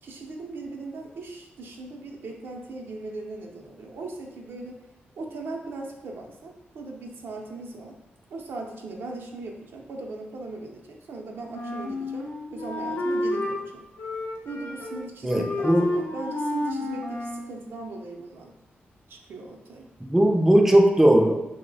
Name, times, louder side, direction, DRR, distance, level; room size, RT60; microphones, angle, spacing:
voice 1, 0.0-4.8 5.2-8.0 8.3-13.8 14.4-18.5 19.1-19.9, right 2 dB, 75° right, 1 dB, 0.5 m, -39 dB
Wind instrument woodwind instrument, 11.5-13.6 14.0-15.0 15.3-17.5, left 1 dB, 80° left, 0.6 m, -30 dB
voice 2, 15.2-15.9 20.0-21.4, right 1 dB, 10° right, 2 dB, 0.4 m, -18 dB
3.0 x 2.0 x 3.9 m, 0.97 s
cardioid pair, 85°, 4 cm